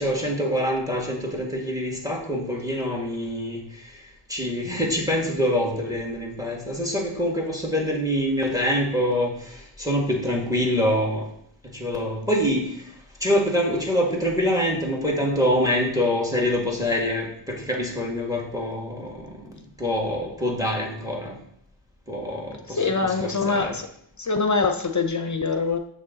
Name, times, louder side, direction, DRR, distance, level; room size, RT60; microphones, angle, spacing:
voice 1, 0.0-11.3 11.6-21.4 22.1-23.8, equal, 5° right, 2.0 m, -25 dB
voice 2, 22.8-23.9 24.2-25.8, left 4 dB, 40° left, 0.6 m, -24 dB
6.7 x 6.4 x 3.9 m
wide cardioid pair, 75°, 48 cm